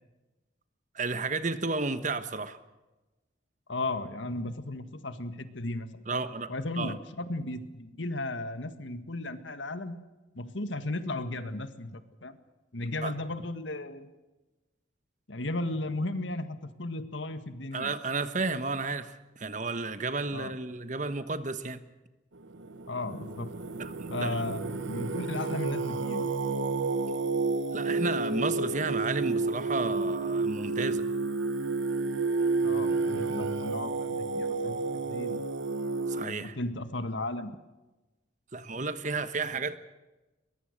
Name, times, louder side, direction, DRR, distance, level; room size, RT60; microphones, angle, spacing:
voice 1, 0.9-2.6 6.1-7.0 13.0-13.1 17.7-21.8 23.8-24.4 27.7-31.0 36.1-36.6 38.5-39.8, right 3 dB, 40° right, 1.2 m, -32 dB
voice 2, 3.7-10.0 10.3-12.4 12.7-14.1 15.3-17.9 20.3-20.5 22.9-23.5 24.1-26.3 32.6-34.8 35.1-35.4 36.2-37.5, left 2 dB, 75° left, 1.8 m, -35 dB
Singing, 22.4-36.2, right 3 dB, 80° right, 1.1 m, -30 dB
22.5 x 22.0 x 6.7 m
head